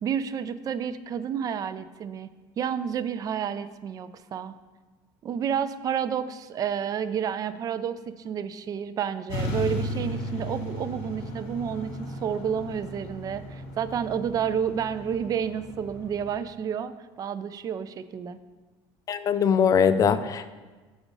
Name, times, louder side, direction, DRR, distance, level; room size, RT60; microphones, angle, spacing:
voice 1, 0.0-2.3 2.6-4.5 5.2-18.4, right 8 dB, 35° right, 13 dB, 0.4 m, -30 dB
sound 1, 9.3-16.4, left 1 dB, 65° left, 1.7 m, -35 dB
voice 2, 19.1-20.5, left 7 dB, 35° left, 11 dB, 0.4 m, -21 dB
6.3 x 5.1 x 6.1 m, 1.3 s
cardioid pair, 120°, 11 cm